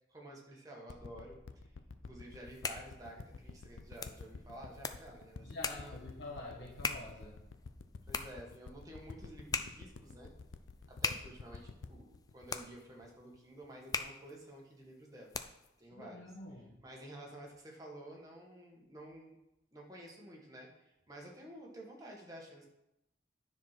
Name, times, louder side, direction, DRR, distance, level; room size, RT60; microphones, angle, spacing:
voice 1, 0.1-1.4 2.0-6.0 8.1-10.3 11.0-15.4 15.8-16.2 16.8-19.3 19.7-22.7, right 1 dB, 20° right, -2 dB, 1.7 m, -51 dB
sound 1, 0.9-13.6 14.2-14.3, left 4 dB, 85° left, 0.5 m, -50 dB
sound 2, 2.3-15.8, left 5 dB, 20° left, 0.4 m, -43 dB
voice 2, 5.4-7.4 15.9-16.8, left 2 dB, 70° left, -3 dB, 1.7 m, -47 dB
9.9 x 4.4 x 5.9 m, 0.88 s
head